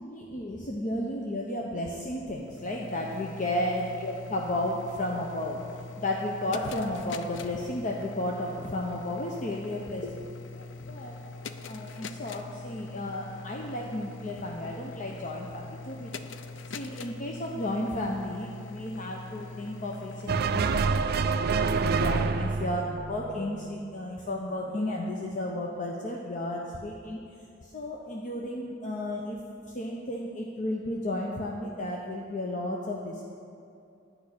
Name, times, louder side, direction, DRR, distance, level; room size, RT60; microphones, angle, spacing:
voice 1, 0.0-11.2 11.7-16.3 16.7-22.8 23.1-27.2 27.6-29.4 29.7-33.2, left 1 dB, 45° left, -1 dB, 0.8 m, -33 dB
sound 1, 2.3-20.8, left 3 dB, 80° left, 0.5 m, -43 dB
sound 2, 20.3-23.8, right 4 dB, 55° right, 0.4 m, -27 dB
10.5 x 5.4 x 8.6 m, 2.5 s
head